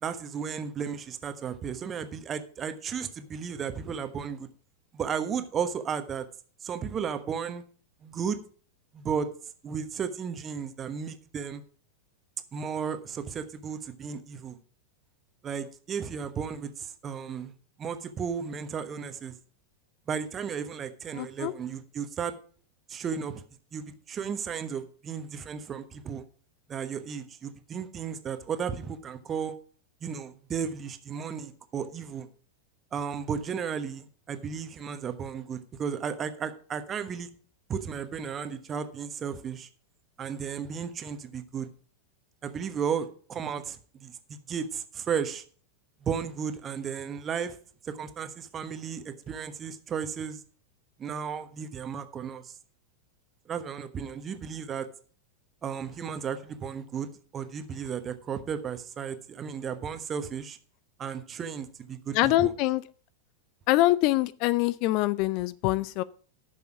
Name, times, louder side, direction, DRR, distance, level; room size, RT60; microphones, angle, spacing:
voice 1, 0.0-4.5 4.9-6.3 6.6-7.6 8.0-8.4 8.9-9.3 9.6-11.6 12.5-14.6 15.4-19.3 20.1-22.3 22.9-23.4 23.7-26.2 26.7-29.5 30.0-32.3 32.9-37.3 37.7-39.7 40.2-41.7 42.4-44.2 44.5-45.4 46.0-47.5 47.8-50.4 51.0-52.5 53.5-54.9 55.6-60.6 61.0-62.5, right 7 dB, 25° right, 10 dB, 1.2 m, -34 dB
voice 2, 21.1-21.5 62.1-62.8 63.7-66.0, left 17 dB, 45° left, 20 dB, 0.4 m, -24 dB
10.5 x 6.9 x 5.9 m, 0.43 s
figure-of-eight pair, 90°, 0 cm